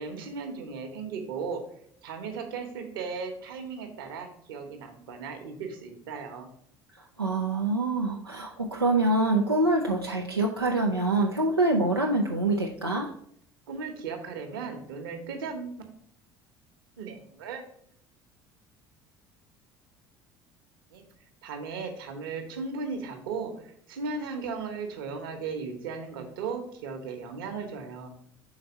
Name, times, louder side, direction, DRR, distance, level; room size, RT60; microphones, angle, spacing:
voice 1, 0.0-1.6 2.0-6.5 13.7-15.8 17.0-17.6 20.9-21.0 21.4-28.1, right 5 dB, 65° right, 5 dB, 1.1 m, -36 dB
voice 2, 7.2-13.1, right 2 dB, 90° right, -1 dB, 0.5 m, -25 dB
5.8 x 4.2 x 5.3 m, 0.65 s
figure-of-eight pair, 60°, 12 cm